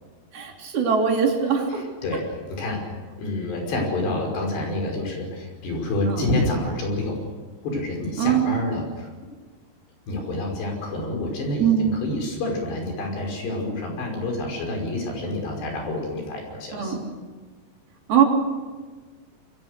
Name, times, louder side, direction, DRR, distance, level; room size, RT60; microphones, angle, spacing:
voice 1, 0.3-1.8 6.1-6.2 8.2-8.5 11.6-11.9 16.7-17.0 18.1-18.2, right 7 dB, 60° right, 0 dB, 4.9 m, -21 dB
voice 2, 1.7-2.8 3.2-7.2 7.6-9.1 10.1-17.0, left 2 dB, 70° left, 2 dB, 7.7 m, -28 dB
28.5 x 22.5 x 6.7 m, 1.4 s
omnidirectional pair, 5.0 m